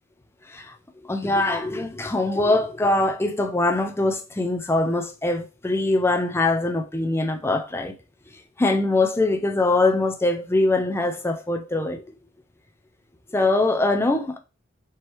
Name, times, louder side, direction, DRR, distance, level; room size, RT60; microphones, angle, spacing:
voice 1, 1.0-7.9 8.6-12.1 13.3-14.4, left 2 dB, 10° left, 0.4 m, -22 dB
4.5 x 3.1 x 3.0 m
head